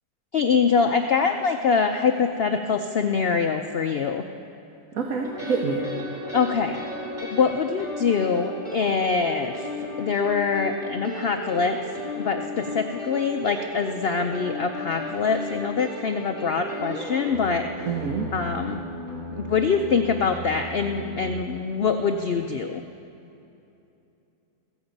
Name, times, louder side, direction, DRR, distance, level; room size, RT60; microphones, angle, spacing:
voice 1, 0.3-4.2 6.3-6.8 7.2-9.7 10.0-17.7 18.3-18.8 19.3-22.8, left 5 dB, 60° left, 5 dB, 0.6 m, -24 dB
voice 2, 4.9-5.8 17.8-18.3, right 5 dB, 60° right, 2 dB, 1.4 m, -26 dB
sound 1, 5.2-21.4, equal, 30° right, 3.7 m, -35 dB
16.0 x 15.5 x 5.3 m, 2.8 s
omnidirectional pair, 1.7 m